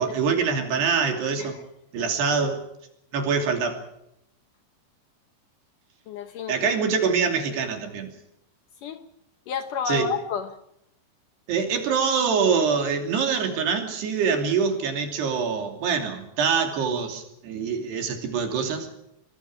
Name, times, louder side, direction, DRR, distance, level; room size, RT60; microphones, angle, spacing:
voice 1, 0.0-1.6 1.9-2.6 3.1-3.8 6.5-8.1 9.9-10.1 11.5-18.9, right 5 dB, 65° right, 5 dB, 4.8 m, -24 dB
voice 2, 6.1-6.7 8.8-9.1 9.5-10.5, left 7 dB, 75° left, 9 dB, 1.9 m, -31 dB
25.5 x 23.0 x 4.9 m, 0.79 s
omnidirectional pair, 5.2 m